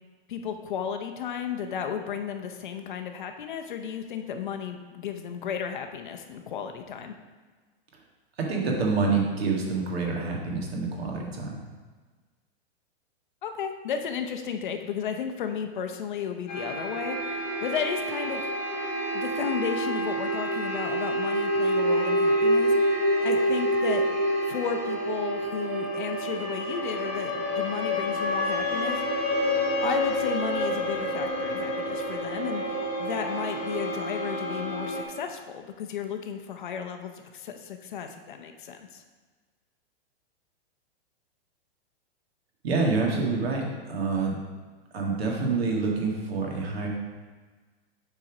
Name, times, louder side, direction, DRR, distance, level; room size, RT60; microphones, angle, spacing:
voice 1, 0.3-7.2 13.4-18.4 19.1-22.9 23.2-24.0 24.5-29.0 29.8-39.0, left 7 dB, 50° left, 5 dB, 0.7 m, -33 dB
voice 2, 8.4-11.6 42.6-44.4 44.9-46.9, right 4 dB, 70° right, -1 dB, 2.0 m, -27 dB
sound 1, 16.5-35.0, equal, 10° left, 0.3 m, -27 dB
7.3 x 4.2 x 4.9 m, 1.4 s
supercardioid pair, 175°, 32 cm